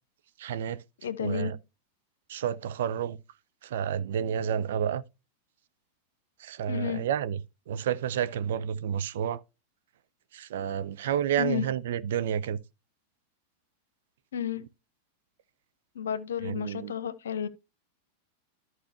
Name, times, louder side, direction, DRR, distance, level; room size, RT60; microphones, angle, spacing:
voice 1, 0.4-0.8 1.2-1.6 2.3-3.2 3.6-5.0 6.4-7.4 7.7-9.4 10.3-12.6 16.4-16.9, right 9 dB, 60° right, 0.6 m, -30 dB
voice 2, 1.0-1.5 6.7-7.0 11.4-11.6 14.3-14.6 15.9-17.5, left 8 dB, 65° left, 0.8 m, -31 dB
14.0 x 4.8 x 2.8 m
figure-of-eight pair, 90°, 0 cm